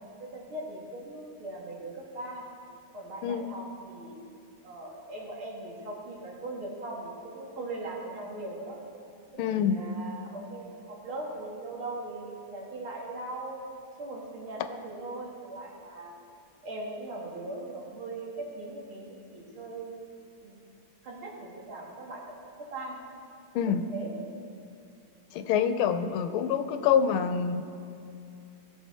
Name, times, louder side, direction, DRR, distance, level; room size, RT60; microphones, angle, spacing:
voice 1, 0.2-2.5 2.9-4.1 4.6-8.8 9.3-13.6 14.0-16.1 16.6-20.0 20.4-20.6 21.0-22.2 22.6-23.0 23.7-24.1, right 2 dB, 80° right, -2 dB, 2.6 m, -40 dB
voice 2, 9.4-9.8 23.5-23.8 25.3-27.6, left 7 dB, 85° left, 9 dB, 1.5 m, -26 dB
16.5 x 6.8 x 4.3 m, 2.6 s
omnidirectional pair, 2.3 m